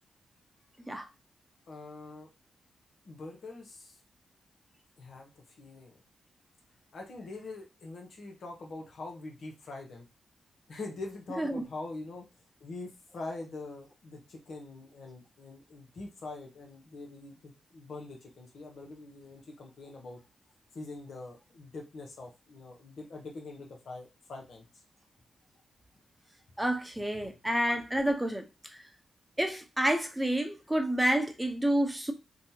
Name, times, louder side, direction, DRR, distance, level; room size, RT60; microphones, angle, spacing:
voice 1, 1.7-2.3 3.1-3.9 5.0-6.0 6.9-10.0 10.7-12.2 12.6-20.2 20.7-24.6, left 2 dB, 70° left, 0.8 m, -44 dB
voice 2, 26.6-28.8 29.4-32.1, right 1 dB, 10° right, 0.8 m, -29 dB
2.8 x 2.3 x 2.8 m
supercardioid pair, 40°, 0 cm